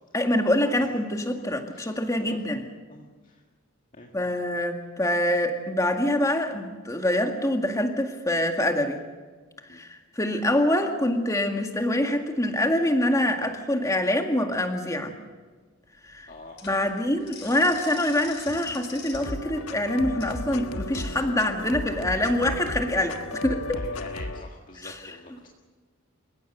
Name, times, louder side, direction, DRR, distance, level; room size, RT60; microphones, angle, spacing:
voice 1, 0.1-2.6 4.1-9.0 9.7-15.1 16.1-16.3 16.6-23.8 24.8-25.4, left 1 dB, 15° left, 4 dB, 2.0 m, -25 dB
voice 2, 2.9-3.4 4.0-4.1 9.7-9.8 16.3-16.6 23.9-25.5, left 2 dB, 40° left, 1 dB, 1.9 m, -45 dB
sound 1, 15.9-21.0, left 5 dB, 60° left, 5.8 m, -44 dB
sound 2, 19.1-24.4, left 2 dB, 80° left, 1.4 m, -34 dB
29.0 x 16.5 x 6.7 m, 1.4 s
head